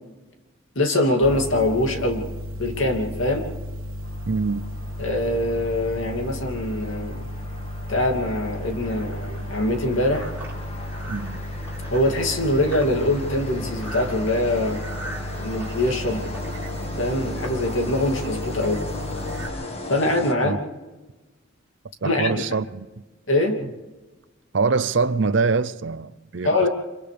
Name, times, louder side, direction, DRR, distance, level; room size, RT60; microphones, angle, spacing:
voice 1, 0.7-2.2 2.6-3.4 5.0-7.2 7.9-10.3 11.9-14.8 15.4-16.2 17.0-18.8 19.9-20.6 22.0-22.6 23.3-23.6 26.4-26.7, left 1 dB, 70° left, 2.7 m, -23 dB
sound 1, 1.2-19.5, left 1 dB, 80° right, 1.5 m, -34 dB
sound 2, 4.0-20.8, left 2 dB, 30° left, 1.7 m, -37 dB
voice 2, 4.3-4.6 11.1-11.4 20.4-20.6 22.0-22.9 24.5-26.7, right 4 dB, 60° right, 0.6 m, -24 dB
sound 3, 8.9-19.5, right 2 dB, 10° right, 4.1 m, -43 dB
29.5 x 26.5 x 3.4 m
head